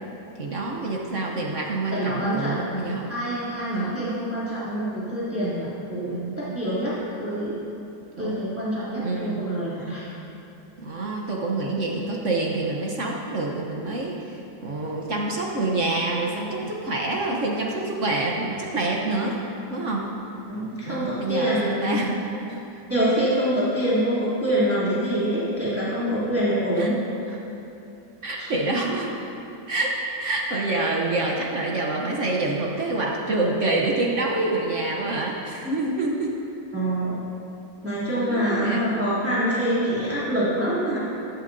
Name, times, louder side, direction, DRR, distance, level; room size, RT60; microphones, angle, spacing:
voice 1, 0.3-3.1 3.7-4.1 5.9-6.6 8.2-8.4 9.0-9.4 10.8-19.4 19.7-20.1 20.8-22.2 22.5-22.6 23.0-23.2 26.8-26.9 27.3-27.4 28.2-29.1 29.7-36.3 38.3-38.8, right 2 dB, 50° right, -1 dB, 0.9 m, -27 dB
voice 2, 1.9-2.6 3.1-7.7 8.2-10.1 20.5-22.0 22.9-26.9 28.4-28.5 36.7-37.2 37.8-41.0, equal, 5° right, -11 dB, 2.7 m, -25 dB
14.0 x 12.0 x 2.7 m, 2.9 s
omnidirectional pair, 2.3 m